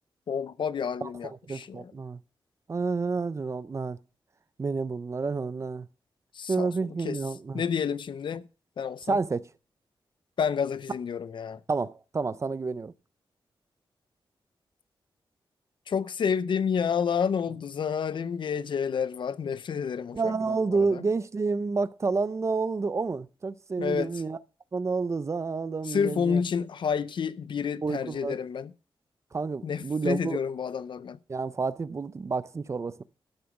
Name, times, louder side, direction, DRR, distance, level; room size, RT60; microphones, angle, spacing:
voice 1, 0.3-1.9 6.3-7.2 7.5-8.5 8.8-9.2 10.4-11.6 15.9-21.0 23.8-24.1 25.8-28.7 29.6-31.2, left 6 dB, 65° left, 0.6 m, -29 dB
voice 2, 1.0-2.2 2.7-4.0 4.6-5.9 6.5-7.6 9.1-9.4 11.7-12.9 20.1-24.4 24.7-26.4 27.8-28.4 29.3-30.4 31.3-33.0, right 4 dB, 35° right, 0.5 m, -29 dB
12.5 x 6.8 x 5.3 m
wide cardioid pair, 145°, 9 cm